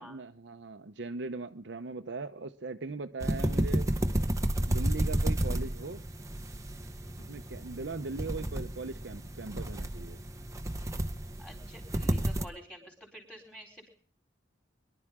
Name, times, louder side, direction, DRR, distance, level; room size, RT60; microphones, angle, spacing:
voice 1, 0.0-3.9 4.7-6.0 7.2-10.2, right 3 dB, 65° right, 7 dB, 0.7 m, -39 dB
sound 1, 3.2-12.5, right 1 dB, 15° right, 0.8 m, -31 dB
voice 2, 11.4-13.9, equal, 5° left, -1 dB, 4.2 m, -49 dB
23.0 x 11.5 x 3.6 m, 0.42 s
head